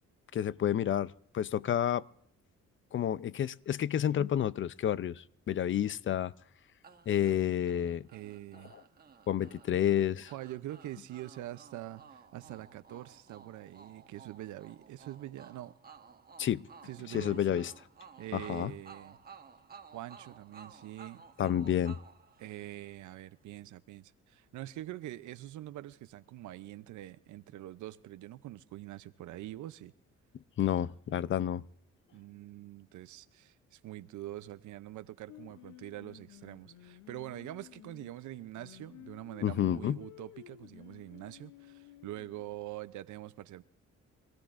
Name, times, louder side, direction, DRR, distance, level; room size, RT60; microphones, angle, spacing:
voice 1, 0.3-2.0 2.9-6.3 7.1-8.0 9.3-10.3 16.4-16.6 17.1-17.7 18.3-18.7 21.4-22.0 30.6-31.6 39.4-40.0, left 10 dB, 40° left, 0.5 m, -30 dB
sound 1, 6.8-23.0, right 6 dB, 30° right, 1.1 m, -55 dB
voice 2, 8.1-8.7 10.3-15.8 16.8-17.6 18.2-19.2 19.9-21.2 22.4-29.9 32.1-43.6, right 14 dB, 75° right, 0.6 m, -44 dB
Singing, 35.3-42.6, left 12 dB, 85° left, 0.7 m, -54 dB
25.5 x 16.0 x 2.5 m
cardioid pair, 90°, 30 cm